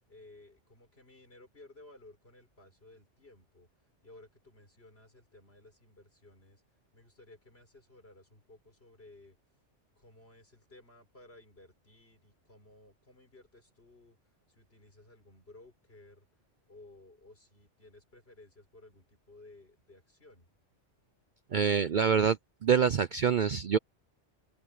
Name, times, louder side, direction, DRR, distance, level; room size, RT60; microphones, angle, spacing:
voice 1, 0.1-3.7 4.0-6.6 6.9-9.4 10.0-14.2 14.5-16.3 16.7-20.5, left 2 dB, 55° left, 5.9 m, -57 dB
voice 2, 21.5-23.8, right 7 dB, 50° right, 0.6 m, -26 dB
open air
omnidirectional pair, 1.2 m